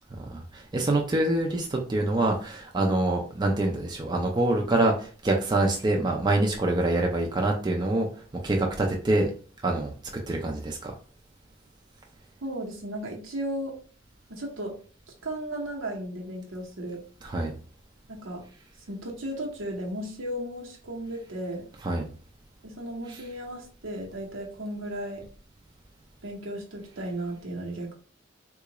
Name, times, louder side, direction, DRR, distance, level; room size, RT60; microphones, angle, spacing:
voice 1, 0.3-8.1 8.4-9.3 9.6-9.9 10.3-10.9 17.2-17.5 21.8-22.0, right 2 dB, 20° right, 0 dB, 0.4 m, -25 dB
voice 2, 12.4-13.8 14.3-14.8 15.2-17.0 18.1-18.5 18.9-21.7 22.6-25.2 26.2-27.9, right 1 dB, 80° right, -1 dB, 1.0 m, -35 dB
3.7 x 2.4 x 2.9 m, 0.40 s
head